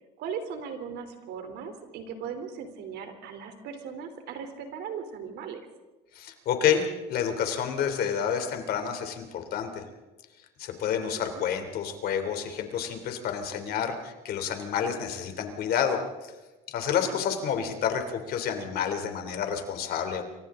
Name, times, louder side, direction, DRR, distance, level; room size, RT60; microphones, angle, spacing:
voice 1, 0.2-5.6 10.9-11.4 16.9-17.2, right 6 dB, 65° right, 7 dB, 3.5 m, -38 dB
voice 2, 6.1-9.8 10.6-16.3 16.7-20.2, left 8 dB, 55° left, 6 dB, 3.2 m, -29 dB
28.5 x 24.5 x 3.8 m, 1.2 s
cardioid pair, 125°, 19 cm